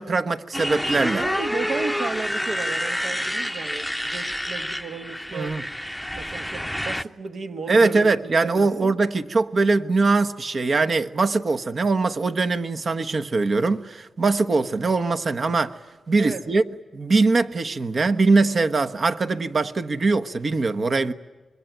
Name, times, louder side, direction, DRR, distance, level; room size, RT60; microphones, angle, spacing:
voice 1, 0.0-1.2 5.3-5.6 7.7-15.7 16.1-16.6 16.9-21.1, right 3 dB, 55° right, 1.2 m, -22 dB
Motorcycle, 0.5-7.0, equal, ahead, 0.8 m, -28 dB
voice 2, 1.2-5.6 6.1-9.0 16.2-16.5, right 4 dB, 70° right, 1.5 m, -34 dB
25.5 x 22.0 x 9.2 m
cardioid pair, 65°, 0 cm